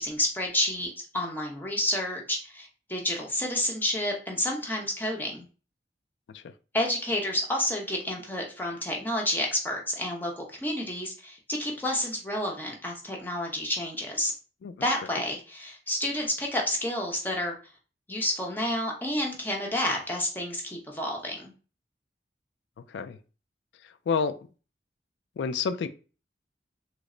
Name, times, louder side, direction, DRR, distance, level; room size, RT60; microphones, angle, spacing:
voice 1, 0.0-5.5 6.7-14.3 14.8-17.6 18.1-21.5, left 1 dB, 10° left, -1 dB, 0.7 m, -30 dB
voice 2, 25.4-25.9, left 5 dB, 80° left, 10 dB, 0.3 m, -28 dB
3.1 x 2.0 x 3.7 m, 0.36 s
head